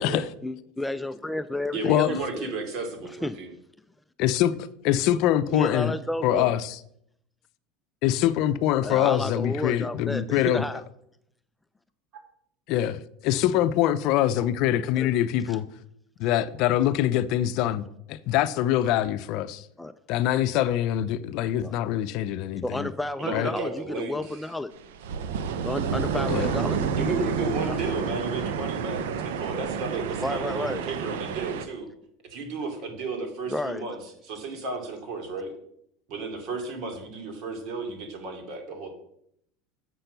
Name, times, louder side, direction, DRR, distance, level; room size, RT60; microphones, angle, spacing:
voice 1, 0.4-2.5 3.2-3.4 5.5-6.5 8.8-10.8 15.0-15.1 15.5-15.6 19.8-19.9 21.6-21.8 22.6-24.7 25.6-27.8 30.2-30.8 33.5-33.8, left 1 dB, 5° left, 0.4 m, -31 dB
voice 2, 1.7-3.5 23.2-24.5 26.3-26.6 26.9-31.9 32.2-34.0 34.2-35.5 36.1-38.9, right 3 dB, 55° right, 2.6 m, -33 dB
voice 3, 4.2-4.5 4.8-5.9 6.2-6.8 8.0-10.6 12.7-15.7 16.2-19.7 20.1-22.9 23.3-23.5 26.3-26.5, left 12 dB, 60° left, 0.5 m, -24 dB
sound 1, 24.8-31.6, right 6 dB, 80° right, 0.8 m, -29 dB
7.6 x 5.8 x 6.7 m
supercardioid pair, 100°, 0 cm